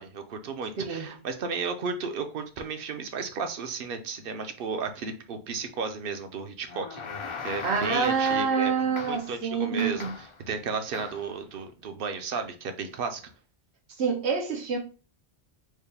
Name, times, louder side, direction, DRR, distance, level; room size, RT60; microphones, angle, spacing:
voice 1, 0.0-7.1 7.4-13.2, right 5 dB, 65° right, 0.8 m, -34 dB
voice 2, 0.8-1.1 7.6-10.1 14.0-14.8, right 5 dB, 90° right, 1.1 m, -27 dB
sound 1, 6.7-8.7 9.0-9.4 9.8-10.4 10.9-11.3, left 5 dB, 40° left, 0.5 m, -39 dB
4.6 x 2.2 x 3.3 m
omnidirectional pair, 1.1 m